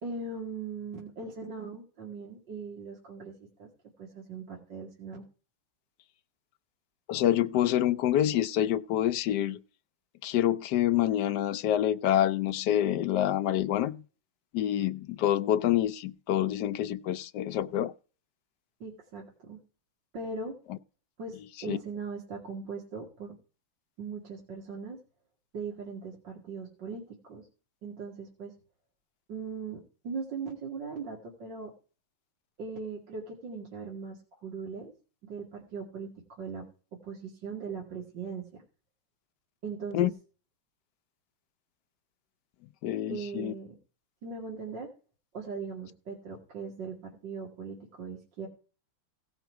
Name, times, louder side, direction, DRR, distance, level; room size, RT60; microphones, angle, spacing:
voice 1, 0.0-3.3 3.6-3.7 4.0-5.2 18.8-19.6 20.1-20.5 21.2-23.4 24.0-25.0 25.5-27.5 27.8-28.5 29.3-31.7 32.6-34.9 35.2-36.6 36.9-38.6 39.6-40.1 43.1-43.8 44.2-44.9 45.3-48.5, right 4 dB, 55° right, 2.9 m, -39 dB
voice 2, 7.1-9.6 10.2-14.0 14.5-17.9 21.7-21.8 39.9-40.1 42.8-43.5, left 12 dB, 70° left, 1.0 m, -27 dB
16.5 x 6.0 x 4.6 m
omnidirectional pair, 2.3 m